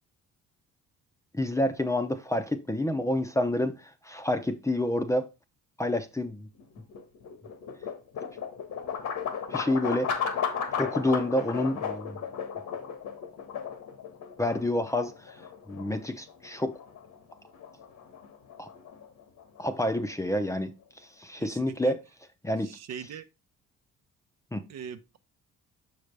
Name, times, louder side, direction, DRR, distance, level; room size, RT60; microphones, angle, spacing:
voice 1, 1.3-5.3 5.8-6.5 9.5-10.2 10.8-12.2 14.4-15.4 15.7-16.8 18.6-18.7 19.6-20.7 21.2-22.0 22.4-22.8 24.5-24.7, left 1 dB, 10° left, 0.6 m, -28 dB
sound 1, 6.5-20.6, left 7 dB, 70° left, 1.3 m, -36 dB
voice 2, 21.4-21.9 22.6-23.2 24.7-25.2, right 7 dB, 60° right, 0.7 m, -41 dB
6.3 x 5.2 x 3.3 m
cardioid pair, 90°, 30 cm